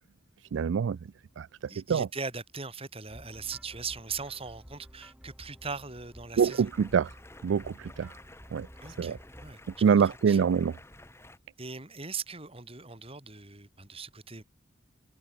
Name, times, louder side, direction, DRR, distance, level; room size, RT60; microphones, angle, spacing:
voice 1, 0.5-1.0 1.4-1.5 1.9-2.1 6.4-7.1 7.4-8.1 8.5-8.7 9.0-9.2 9.8-10.7, right 6 dB, 75° right, 0.3 m, -25 dB
voice 2, 1.7-6.7 8.8-10.4 11.6-14.4, right 5 dB, 30° right, 4.1 m, -40 dB
sound 1, 3.1-9.5, equal, 5° right, 5.6 m, -52 dB
Stream, 6.4-11.4, left 1 dB, 15° left, 3.2 m, -52 dB
head